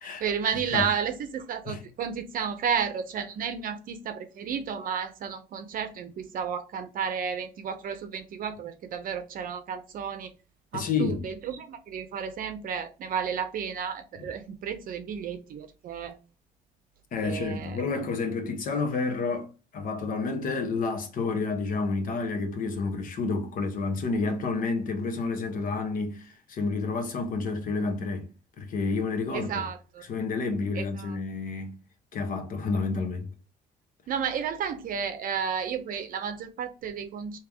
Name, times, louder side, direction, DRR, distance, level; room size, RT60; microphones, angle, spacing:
voice 1, 0.2-10.3 10.7-16.2 17.2-17.8 29.3-30.0 30.7-31.2 34.1-37.4, right 7 dB, 55° right, 0.6 m, -32 dB
voice 2, 10.7-11.2 17.1-28.3 28.6-29.6 30.1-31.7 32.1-33.3, left 4 dB, 55° left, 1.0 m, -30 dB
3.3 x 2.9 x 3.4 m
cardioid pair, 110°, 17 cm